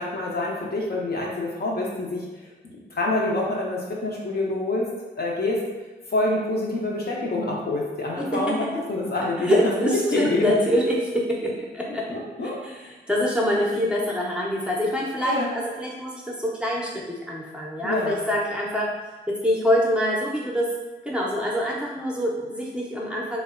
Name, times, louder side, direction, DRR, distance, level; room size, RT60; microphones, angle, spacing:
voice 1, 0.0-4.9 5.2-5.6 6.1-10.5 12.1-12.6 15.2-15.5 17.8-18.2, left 2 dB, 55° left, -3 dB, 0.6 m, -27 dB
voice 2, 9.4-12.0 12.6-12.8 13.1-18.9 19.3-20.7 21.0-23.4, equal, 5° right, -4 dB, 0.6 m, -25 dB
2.6 x 2.1 x 2.4 m, 1.2 s
supercardioid pair, 45°, 20 cm